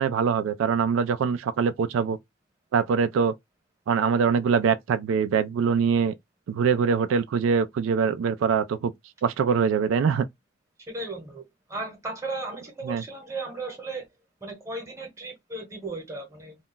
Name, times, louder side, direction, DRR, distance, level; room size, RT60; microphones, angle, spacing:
voice 1, 0.0-2.2 2.7-3.3 3.9-6.1 6.5-8.9 9.2-10.2 12.9-13.0, right 6 dB, 85° right, 0.3 m, -23 dB
voice 2, 10.9-11.4 11.7-14.1 14.4-16.7, right 2 dB, 15° right, 0.9 m, -35 dB
2.3 x 2.1 x 3.8 m
head